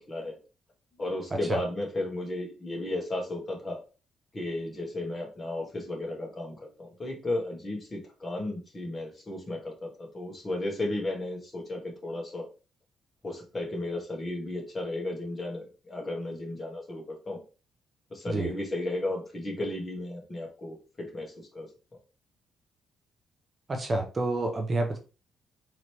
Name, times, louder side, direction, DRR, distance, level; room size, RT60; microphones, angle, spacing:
voice 1, 0.1-0.4 1.0-3.8 4.3-9.9 10.1-12.4 13.2-17.4 18.1-20.8 21.1-21.7, left 1 dB, 30° left, 0 dB, 1.7 m, -34 dB
voice 2, 23.7-25.0, right 2 dB, 30° right, 3 dB, 0.7 m, -29 dB
3.9 x 3.0 x 3.3 m, 0.34 s
cardioid pair, 90°, 0 cm